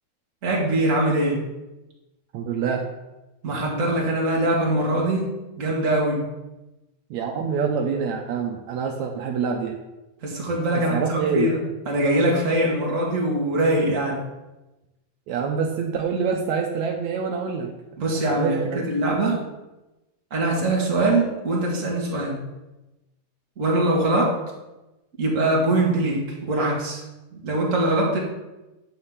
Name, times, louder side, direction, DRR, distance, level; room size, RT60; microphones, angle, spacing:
voice 1, 0.4-1.4 3.4-5.3 5.6-6.2 10.2-11.6 11.9-14.2 18.0-19.4 20.3-22.4 23.6-24.3 25.2-26.2 26.5-27.0 27.3-28.2, right 1 dB, 30° right, -3 dB, 2.2 m, -22 dB
voice 2, 2.3-2.8 7.1-9.8 10.7-11.5 15.3-17.7 18.4-18.8, right 6 dB, 75° right, 2 dB, 2.0 m, -26 dB
9.8 x 4.3 x 7.3 m, 1.0 s
omnidirectional pair, 3.4 m